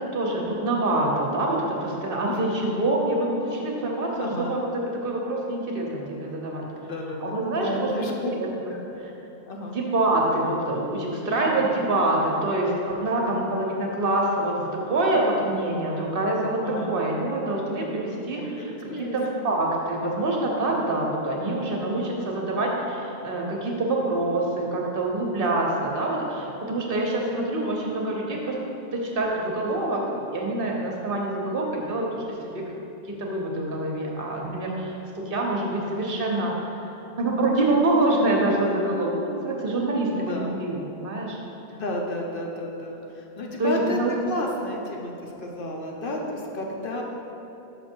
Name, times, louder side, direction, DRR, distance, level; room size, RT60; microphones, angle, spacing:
voice 1, 0.0-6.6 7.2-8.7 9.7-16.6 16.9-18.6 18.9-28.6 28.9-32.6 33.0-36.8 37.2-41.4 43.6-44.1, right 2 dB, 60° right, -1 dB, 1.1 m, -26 dB
voice 2, 2.3-2.6 4.2-4.5 6.8-8.3 8.7-8.8 9.5-9.8 11.3-11.6 13.2-13.5 16.6-17.0 18.3-19.5 40.1-40.6 41.8-44.0 44.2-47.0, left 1 dB, 60° left, 0 dB, 0.9 m, -32 dB
6.1 x 5.3 x 4.4 m, 3.0 s
omnidirectional pair, 1.1 m